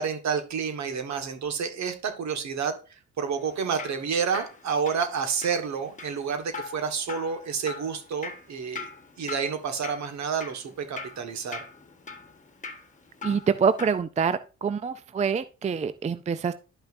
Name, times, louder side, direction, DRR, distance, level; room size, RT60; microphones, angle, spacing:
voice 1, 0.0-8.9 9.2-11.6, right 6 dB, 65° right, 1.6 m, -29 dB
Drip, 3.4-14.0, left 4 dB, 25° left, 1.3 m, -42 dB
voice 2, 13.2-16.5, right 6 dB, 25° right, 0.4 m, -26 dB
11.5 x 5.6 x 2.6 m
cardioid pair, 90°, 30 cm